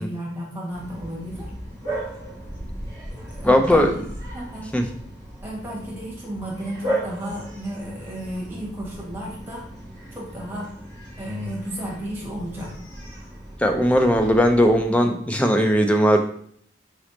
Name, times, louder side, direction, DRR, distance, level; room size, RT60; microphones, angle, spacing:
voice 1, 0.0-1.5 3.1-3.8 4.3-4.7 5.4-9.6 10.1-10.7 11.2-12.7 14.9-15.1, equal, 10° right, -4 dB, 1.1 m, -33 dB
Bark, 0.7-15.1, right 1 dB, 20° left, 1.2 m, -36 dB
voice 2, 3.4-3.9 4.7-4.9 13.6-16.2, equal, 5° left, 4 dB, 0.3 m, -18 dB
5.0 x 3.1 x 2.9 m, 0.62 s
head